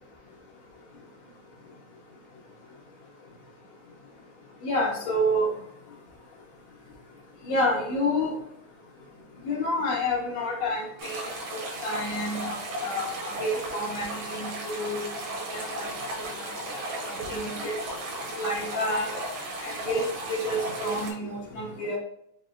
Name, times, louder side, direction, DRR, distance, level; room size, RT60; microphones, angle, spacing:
voice 1, 4.6-5.5 7.5-8.3 9.4-11.2 11.5-15.0 15.5-15.9 16.7-16.8 17.1-17.7 18.4-19.1 19.6-22.0, left 1 dB, 70° left, -2 dB, 1.9 m, -29 dB
sound 1, 11.0-21.1, right 1 dB, 80° right, 2.2 m, -35 dB
5.2 x 2.9 x 2.5 m, 0.71 s
omnidirectional pair, 3.4 m